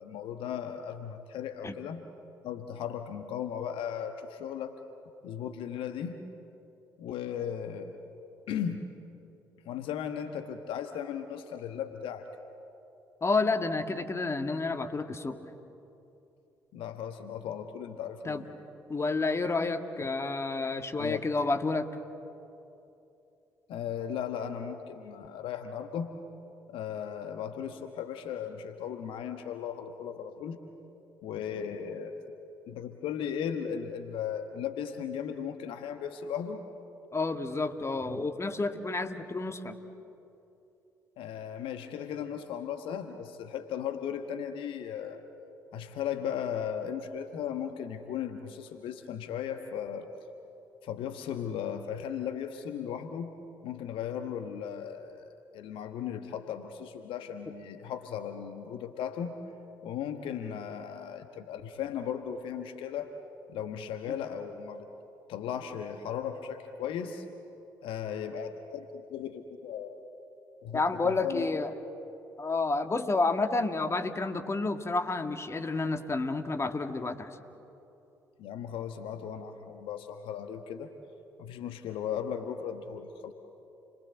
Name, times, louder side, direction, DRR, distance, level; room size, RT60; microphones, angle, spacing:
voice 1, 0.0-2.0 2.4-4.8 5.2-6.2 7.0-8.0 8.5-8.9 9.6-12.3 16.7-18.5 21.0-21.2 23.7-26.1 26.7-30.6 31.2-32.2 32.7-36.6 41.2-45.2 45.7-50.1 50.8-53.3 53.6-55.2 55.5-59.4 59.8-63.1 63.5-64.9 65.3-67.2 67.8-70.0 70.6-71.5 78.4-80.9 81.4-83.3, left 8 dB, 65° left, 7 dB, 1.3 m, -36 dB
voice 2, 13.2-15.4 18.3-18.4 18.9-21.9 37.1-39.8 70.7-71.7 72.4-77.4, left 3 dB, 30° left, 7 dB, 1.9 m, -30 dB
29.5 x 22.0 x 8.0 m, 2.8 s
figure-of-eight pair, 45°, 10 cm